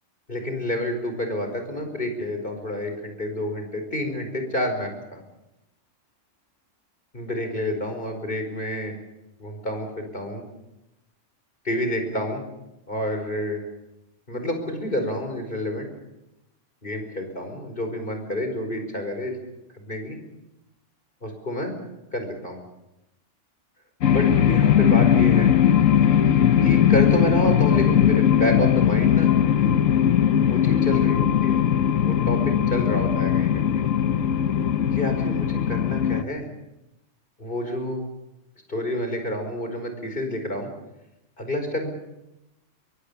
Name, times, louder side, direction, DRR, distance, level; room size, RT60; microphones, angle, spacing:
voice 1, 0.3-5.2 7.1-8.9 9.4-10.4 11.6-12.4 12.9-13.6 14.3-15.9 16.8-19.4 19.7-20.2 21.2-21.7 22.1-22.6 24.1-25.5 26.6-29.3 30.5-31.6 32.0-32.4 32.7-33.9 34.9-36.5 37.4-38.0 38.7-40.7 41.4-41.9, left 1 dB, 45° left, 5 dB, 5.2 m, -29 dB
sound 1, 24.0-36.2, left 9 dB, 85° left, 1.4 m, -19 dB
23.0 x 22.5 x 7.0 m, 0.93 s
omnidirectional pair, 1.3 m